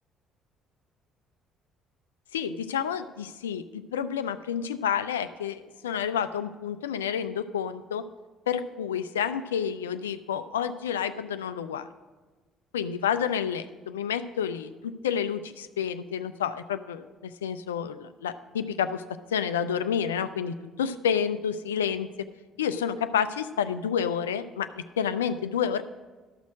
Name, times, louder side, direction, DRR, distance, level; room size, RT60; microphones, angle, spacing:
voice 1, 2.3-8.0 8.5-11.9 12.7-19.0 19.3-22.1 22.6-25.8, left 8 dB, 80° left, 12 dB, 0.4 m, -29 dB
13.0 x 6.2 x 6.1 m, 1.3 s
figure-of-eight pair, 50°, 0 cm